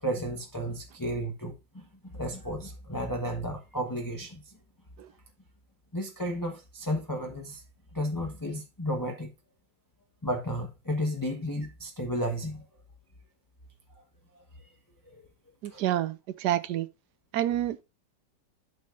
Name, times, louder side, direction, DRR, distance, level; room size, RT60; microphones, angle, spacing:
voice 1, 0.0-4.6 5.9-7.6 7.9-9.3 10.2-12.6 14.6-14.7 15.1-15.3 15.7-15.8, equal, 15° left, 0.9 m, -33 dB
voice 2, 15.6-16.9 17.3-17.8, right 12 dB, 75° right, 1.1 m, -28 dB
11.5 x 4.9 x 2.5 m
omnidirectional pair, 1.9 m